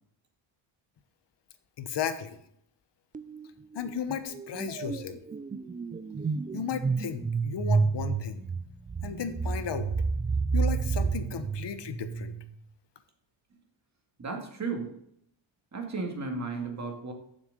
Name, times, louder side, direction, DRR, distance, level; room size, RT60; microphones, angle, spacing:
voice 1, 1.8-2.4 3.7-5.2 6.5-8.4 9.0-9.9 10.5-12.3, left 7 dB, 55° left, 11 dB, 1.1 m, -34 dB
sound 1, 3.1-3.5 3.7-12.5, right 5 dB, 20° right, 0.4 m, -30 dB
voice 2, 14.2-14.9 15.7-17.1, right 4 dB, 35° right, 3 dB, 2.1 m, -34 dB
7.3 x 6.4 x 6.6 m, 0.72 s
cardioid pair, 110°, 49 cm